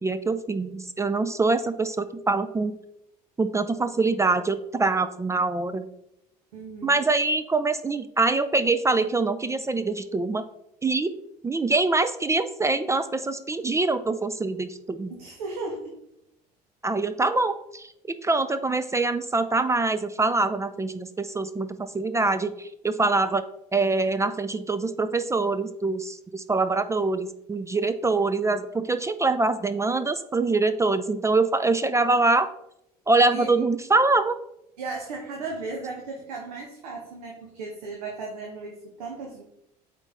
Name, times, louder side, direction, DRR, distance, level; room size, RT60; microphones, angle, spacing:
voice 1, 0.0-2.7 3.4-5.9 6.8-10.4 10.8-11.1 11.4-15.1 16.8-23.4 23.7-32.5 33.1-34.4, right 3 dB, 15° right, 12 dB, 0.4 m, -24 dB
voice 2, 6.5-7.0 15.1-16.0 33.3-33.5 34.8-39.4, right 3 dB, 75° right, 0 dB, 1.1 m, -36 dB
8.1 x 3.9 x 3.5 m, 0.81 s
hypercardioid pair, 65°, 20 cm